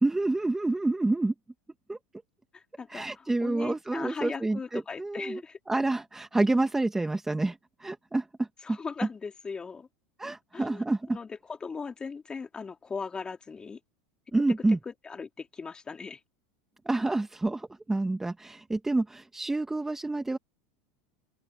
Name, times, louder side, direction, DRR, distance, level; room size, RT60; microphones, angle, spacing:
voice 1, 0.0-1.3 1.9-2.0 2.9-5.4 5.7-8.8 10.2-11.2 14.3-14.8 16.8-20.4, right 2 dB, 10° right, 1.6 m, -28 dB
voice 2, 2.5-5.6 8.6-9.9 10.5-10.8 11.1-13.8 14.9-16.2, left 5 dB, 20° left, 4.2 m, -38 dB
open air
hypercardioid pair, 105°, 4 cm